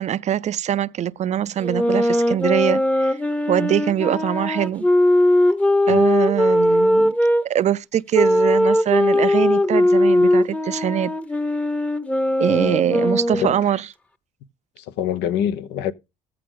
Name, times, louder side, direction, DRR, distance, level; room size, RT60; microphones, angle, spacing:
voice 1, 0.0-3.2 3.5-4.9 5.9-7.1 7.4-11.1 12.4-13.8, right 10 dB, 45° right, 0.4 m, -22 dB
sound 1, 1.6-7.4 8.1-13.6, left 1 dB, 5° left, 0.8 m, -19 dB
voice 2, 14.8-15.9, left 9 dB, 90° left, 0.9 m, -25 dB
14.5 x 5.0 x 3.8 m
cardioid pair, 110°, 17 cm